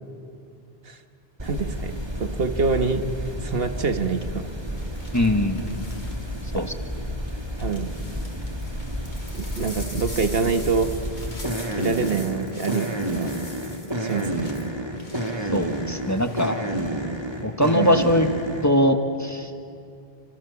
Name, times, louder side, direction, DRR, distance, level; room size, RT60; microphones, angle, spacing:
sound 1, 1.4-18.8, equal, 25° right, 2.4 m, -30 dB
voice 1, 1.4-3.1 3.4-4.4 6.5-6.7 7.6-7.9 9.3-10.9 11.8-13.3 14.0-14.5 17.7-17.9, right 4 dB, 70° right, 8 dB, 1.5 m, -25 dB
sound 2, 3.1-3.4 4.8-6.7 7.2-16.5 16.9-17.3, left 1 dB, 50° left, 3.2 m, -44 dB
voice 2, 5.1-5.8 6.5-6.7 15.5-16.6 17.4-18.3 18.6-19.5, left 1 dB, 15° left, 6 dB, 1.4 m, -21 dB
28.5 x 26.5 x 7.1 m, 2.4 s
omnidirectional pair, 1.0 m